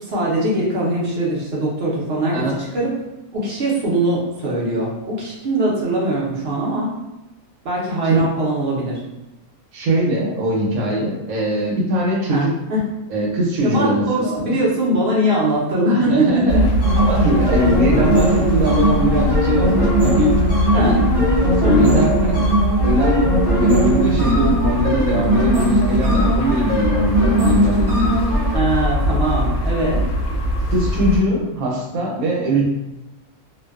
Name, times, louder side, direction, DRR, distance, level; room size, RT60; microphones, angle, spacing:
voice 1, 0.1-2.9 3.3-7.0 7.6-9.0 12.3-12.8 13.6-16.6 20.7-21.0 21.6-22.1 28.5-30.0, right 1 dB, 55° right, -5 dB, 0.7 m, -21 dB
voice 2, 9.7-12.5 13.1-14.6 15.9-16.7 17.0-20.3 20.7-22.4 22.8-23.3 23.6-28.4 30.7-32.6, equal, 75° right, -2 dB, 1.1 m, -21 dB
sound 1, 16.5-31.2, left 1 dB, 70° left, 0.9 m, -22 dB
sound 2, 16.8-28.6, right 1 dB, 35° right, 0.4 m, -19 dB
2.5 x 2.2 x 2.3 m, 0.97 s
omnidirectional pair, 1.6 m